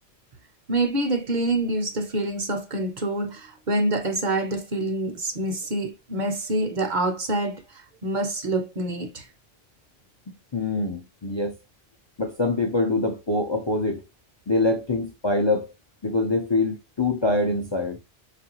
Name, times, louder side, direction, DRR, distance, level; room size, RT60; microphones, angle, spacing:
voice 1, 0.7-9.3, right 2 dB, 50° right, 0.8 m, -26 dB
voice 2, 10.5-11.6 12.2-14.0 14.5-15.7 16.0-18.0, left 2 dB, 35° left, 0.5 m, -24 dB
4.6 x 2.5 x 2.8 m
omnidirectional pair, 1.1 m